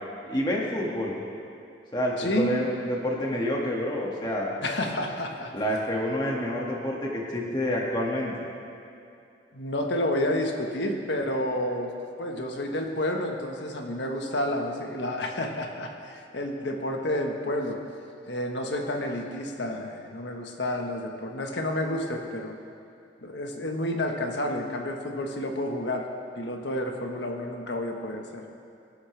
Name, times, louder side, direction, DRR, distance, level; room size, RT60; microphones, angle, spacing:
voice 1, 0.3-1.1 1.9-4.5 5.5-8.3, equal, 25° left, -3 dB, 2.1 m, -28 dB
voice 2, 2.2-2.5 4.6-5.5 9.5-11.9 12.2-17.8 18.3-22.5 23.2-26.1 26.4-28.4, left 1 dB, 70° left, 2 dB, 1.5 m, -30 dB
24.5 x 11.5 x 3.5 m, 2.6 s
head